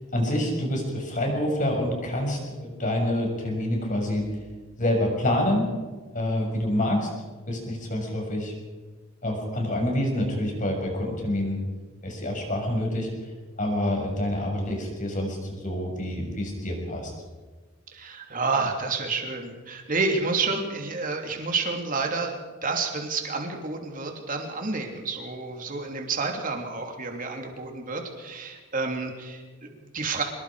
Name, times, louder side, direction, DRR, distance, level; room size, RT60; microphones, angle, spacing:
voice 1, 0.1-4.2 4.8-5.7 6.1-7.1 7.5-8.5 9.2-11.6 12.0-13.1 13.6-17.1, left 1 dB, 35° left, 1 dB, 6.3 m, -27 dB
voice 2, 17.9-30.2, right 4 dB, 40° right, 2 dB, 3.0 m, -29 dB
24.5 x 21.5 x 5.0 m, 1.3 s
head